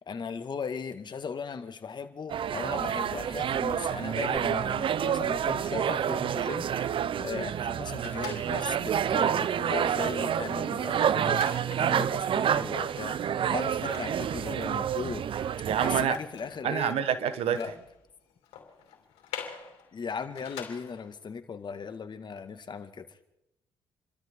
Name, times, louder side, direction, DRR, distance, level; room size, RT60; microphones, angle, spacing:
voice 1, 0.0-11.5 11.8-15.5 15.8-17.0 17.5-17.7 19.9-23.2, left 5 dB, 45° left, 8 dB, 1.8 m, -38 dB
sound 1, 2.3-16.0, right 9 dB, 55° right, 0.6 m, -28 dB
sound 2, 8.0-8.9 9.4-9.5 9.8-21.2, left 8 dB, 85° left, 2.9 m, -47 dB
voice 2, 15.6-16.2 16.6-17.6, right 9 dB, 75° right, 13 dB, 1.1 m, -27 dB
28.5 x 13.0 x 3.7 m, 0.85 s
supercardioid pair, 60°, 10 cm